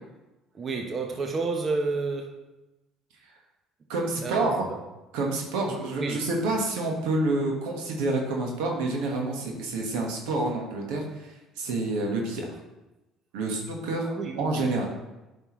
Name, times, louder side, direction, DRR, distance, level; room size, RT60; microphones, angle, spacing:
voice 1, 0.5-2.4 4.2-4.5 6.0-6.2 14.0-14.8, right 3 dB, 40° right, 2 dB, 0.9 m, -30 dB
voice 2, 3.9-4.6 5.1-11.3 11.6-12.5 13.3-14.1 14.4-14.8, right 2 dB, 80° right, 0 dB, 1.5 m, -28 dB
9.3 x 5.4 x 3.1 m, 1.0 s
supercardioid pair, 80°, 0 cm